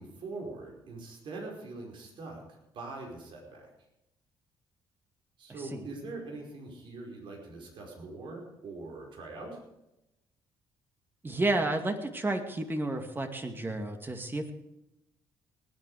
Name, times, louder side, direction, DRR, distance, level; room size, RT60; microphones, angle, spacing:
voice 1, 0.0-3.7 5.4-9.6, right 3 dB, 65° right, 0 dB, 5.1 m, -43 dB
voice 2, 11.2-14.5, right 2 dB, 25° right, 6 dB, 2.3 m, -31 dB
19.0 x 9.7 x 5.0 m, 0.89 s
cardioid pair, 80°, 9 cm